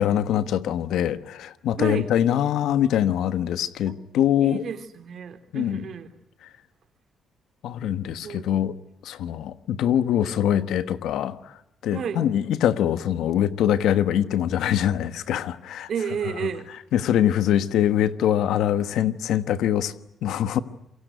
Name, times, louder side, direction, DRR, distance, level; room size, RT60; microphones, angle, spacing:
voice 1, 0.0-4.7 5.5-5.8 7.6-8.8 9.0-11.4 11.8-15.9 16.2-16.5 16.9-19.9 20.2-20.6, left 10 dB, 80° left, 12 dB, 1.3 m, -23 dB
voice 2, 4.4-6.1 8.2-8.5 11.9-12.2 15.9-16.7, right 7 dB, 60° right, 8 dB, 3.2 m, -31 dB
27.5 x 23.0 x 9.3 m, 0.81 s
cardioid pair, 90°, 0 cm